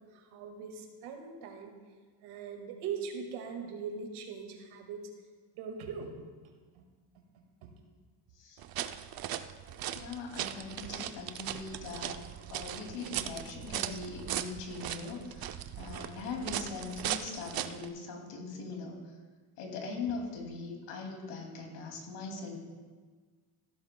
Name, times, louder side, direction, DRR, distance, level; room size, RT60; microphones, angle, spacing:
voice 1, 0.0-1.8 2.2-5.1 5.5-6.8 7.1-7.7, right 6 dB, 90° right, 3 dB, 1.9 m, -41 dB
sound 1, 8.6-17.9, right 11 dB, 50° right, 0.6 m, -38 dB
voice 2, 9.9-12.2 12.5-19.0 19.6-22.6, left 4 dB, 85° left, 1 dB, 2.6 m, -41 dB
15.0 x 12.5 x 2.2 m, 1.5 s
cardioid pair, 135°, 48 cm